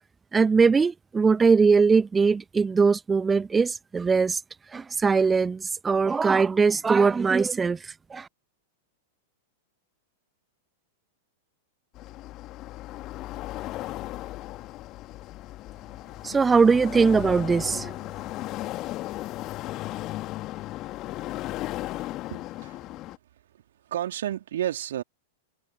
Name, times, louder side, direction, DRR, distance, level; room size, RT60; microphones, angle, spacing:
voice 1, 0.3-4.4 4.7-8.3 16.2-18.0, right 5 dB, 15° right, 1.0 m, -21 dB
sound 1, 11.9-23.2, left 17 dB, 40° left, 2.2 m, -36 dB
voice 2, 22.3-22.8 23.8-25.0, right 11 dB, 65° right, 3.4 m, -31 dB
figure-of-eight pair, 95°, 0 cm